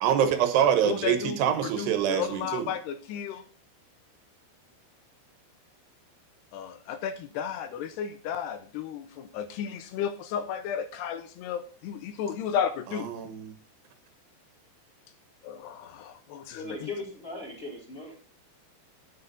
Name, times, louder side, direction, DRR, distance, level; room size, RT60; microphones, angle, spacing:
voice 1, 0.0-2.7 12.9-13.5, right 9 dB, 75° right, 9 dB, 3.2 m, -25 dB
voice 2, 0.9-3.4 6.5-13.1 15.4-16.9, left 8 dB, 80° left, 10 dB, 2.7 m, -33 dB
voice 3, 16.5-18.2, left 2 dB, 15° left, 0 dB, 3.2 m, -38 dB
9.8 x 9.5 x 4.0 m, 0.38 s
omnidirectional pair, 5.1 m